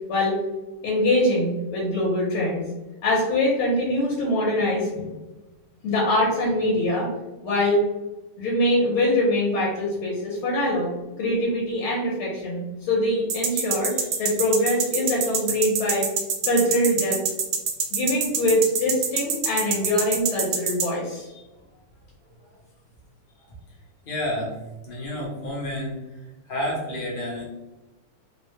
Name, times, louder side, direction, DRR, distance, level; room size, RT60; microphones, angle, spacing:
voice 1, 0.8-2.7 3.0-5.1 5.8-7.1 7.4-7.8 8.4-10.9 11.2-16.1 16.4-17.2 17.9-21.3, left 1 dB, 85° left, -5 dB, 1.7 m, -23 dB
sound 1, 13.3-20.8, right 6 dB, 75° right, 1.4 m, -24 dB
voice 2, 24.1-24.6 24.8-26.0 26.5-27.4, left 1 dB, 60° left, -4 dB, 0.5 m, -30 dB
3.9 x 2.1 x 3.0 m, 1.1 s
omnidirectional pair, 2.3 m